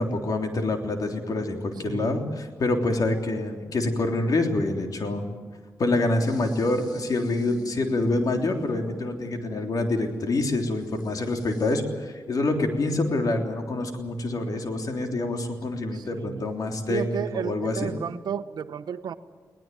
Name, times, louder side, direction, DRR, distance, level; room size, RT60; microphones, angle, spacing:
voice 1, 0.0-5.2 5.8-17.9, left 2 dB, 60° left, 4 dB, 3.4 m, -26 dB
voice 2, 1.8-2.1 15.9-16.5 16.9-19.1, right 8 dB, 80° right, 11 dB, 1.0 m, -32 dB
sound 1, 6.2-11.7, left 1 dB, 85° left, 3.1 m, -46 dB
21.0 x 18.5 x 9.3 m, 1.5 s
cardioid pair, 65°, 7 cm